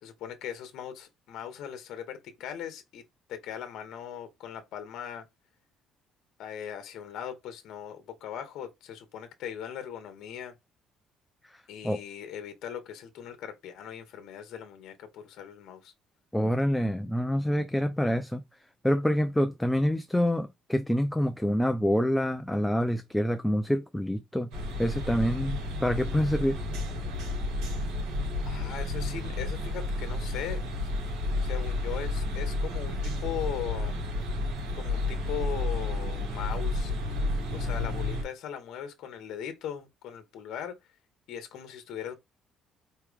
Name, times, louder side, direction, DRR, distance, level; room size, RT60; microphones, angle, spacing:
voice 1, 0.0-3.0 3.3-5.3 6.4-10.5 11.7-15.9 28.4-30.6 31.4-34.1 34.7-36.9 37.5-40.8 41.3-42.1, left 9 dB, 70° left, 1.1 m, -39 dB
voice 2, 11.5-12.0 16.3-18.4 18.8-24.5 24.8-26.6, equal, 5° left, 0.4 m, -27 dB
sound 1, 24.5-38.2, left 2 dB, 85° right, 2.3 m, -31 dB
4.4 x 3.3 x 3.4 m
cardioid pair, 120°, 0 cm